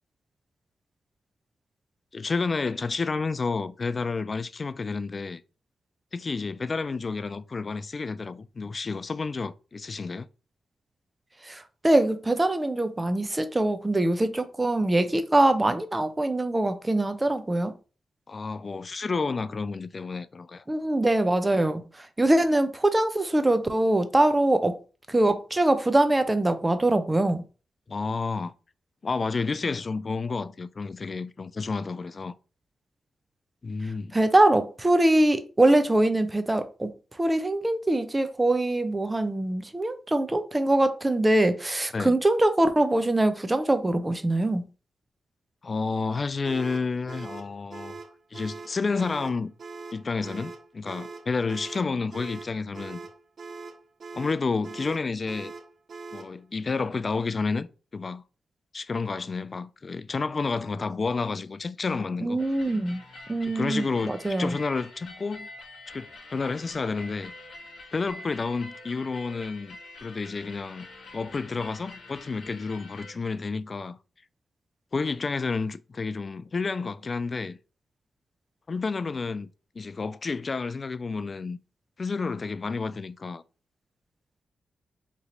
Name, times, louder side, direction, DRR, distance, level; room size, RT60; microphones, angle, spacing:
voice 1, 2.1-5.4 6.1-10.3 18.3-20.6 27.9-28.5 29.0-32.4 33.6-34.1 41.9-42.1 45.6-47.9 48.3-49.5 49.9-53.0 54.1-55.5 56.1-57.7 57.9-58.2 58.7-62.4 63.4-65.5 65.9-67.3 67.9-70.9 71.1-74.0 74.9-77.6 78.7-79.5 79.8-81.6 82.0-83.4, left 4 dB, 45° left, 0.3 m, -30 dB
voice 2, 11.4-17.7 20.7-24.8 25.1-27.4 34.1-44.6 62.2-63.0 63.3-64.6, right 1 dB, 25° right, 0.6 m, -23 dB
sound 1, 46.4-56.4, right 4 dB, 65° right, 0.5 m, -42 dB
sound 2, 62.4-73.1, left 2 dB, 65° left, 1.0 m, -46 dB
3.1 x 2.7 x 3.9 m
supercardioid pair, 45°, 0 cm